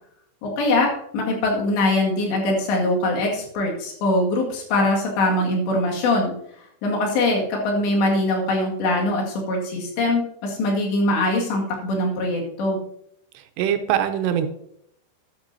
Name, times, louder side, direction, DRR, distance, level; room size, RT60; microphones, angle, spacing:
voice 1, 0.4-6.3 6.8-12.8, left 2 dB, 85° left, -1 dB, 4.3 m, -22 dB
voice 2, 13.3-14.5, right 10 dB, 85° right, 7 dB, 2.9 m, -23 dB
13.0 x 11.5 x 2.7 m, 0.73 s
omnidirectional pair, 4.9 m